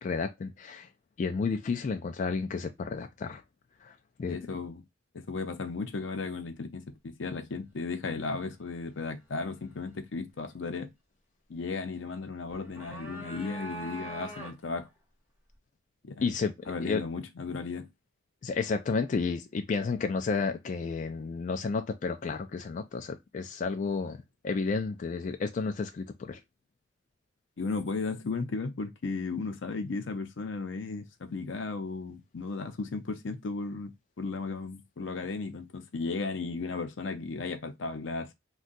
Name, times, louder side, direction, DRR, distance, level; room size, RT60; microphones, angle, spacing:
voice 1, 0.0-0.9 1.2-3.4 3.8-4.4 16.2-16.5 16.8-17.0 18.4-26.4, left 4 dB, 40° left, 0.3 m, -31 dB
voice 2, 4.2-4.8 5.1-10.9 11.5-14.9 16.1-16.3 16.7-17.9 27.6-33.9 34.2-38.3, left 4 dB, 80° left, 0.6 m, -35 dB
sound 1, 12.5-14.8, right 1 dB, 10° right, 1.3 m, -42 dB
2.6 x 2.3 x 3.8 m
head